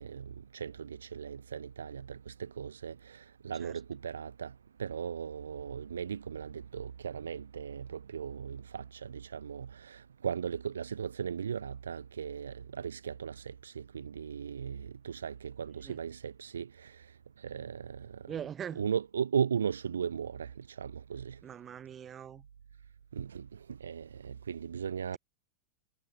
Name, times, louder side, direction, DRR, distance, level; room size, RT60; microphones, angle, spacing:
voice 1, 0.0-4.5 4.8-17.0 17.4-18.2 18.7-21.4 23.1-25.2, right 7 dB, 70° right, 0.5 m, -37 dB
voice 2, 18.3-18.8 21.4-22.4, right 9 dB, 25° right, 2.0 m, -41 dB
figure-of-eight pair, 90°, 0 cm